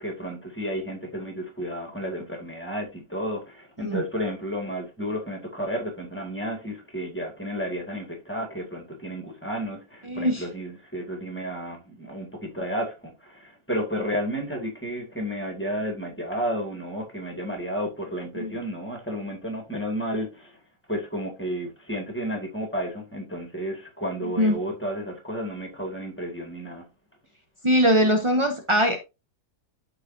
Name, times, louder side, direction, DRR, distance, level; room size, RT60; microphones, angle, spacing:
voice 1, 0.0-20.6 20.9-26.9, equal, 5° left, 1.7 m, -32 dB
voice 2, 10.1-10.4 18.4-18.5 24.4-24.6 27.6-29.0, equal, 50° right, 0.3 m, -21 dB
11.5 x 4.0 x 2.6 m
omnidirectional pair, 1.8 m